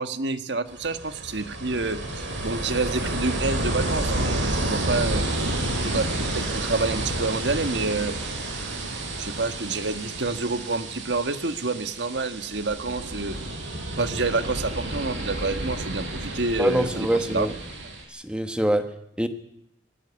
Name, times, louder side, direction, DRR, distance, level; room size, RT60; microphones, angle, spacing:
voice 1, 0.0-5.2 5.8-8.1 9.2-13.4 14.0-17.5, right 3 dB, 70° right, 9 dB, 1.5 m, -28 dB
Ocean, 0.7-18.0, right 1 dB, 85° right, 5.7 m, -30 dB
voice 2, 16.6-17.5 18.1-19.3, right 1 dB, 5° right, 7 dB, 1.3 m, -25 dB
19.5 x 17.0 x 9.9 m, 0.76 s
head